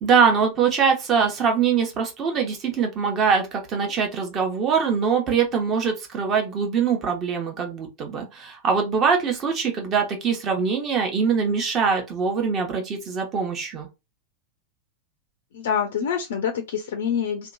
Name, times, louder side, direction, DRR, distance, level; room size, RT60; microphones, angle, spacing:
voice 1, 0.0-13.9, right 6 dB, 30° right, 0.9 m, -23 dB
voice 2, 15.5-17.5, left 7 dB, 60° left, 0.4 m, -26 dB
2.8 x 2.2 x 2.5 m
figure-of-eight pair, 90°, 0 cm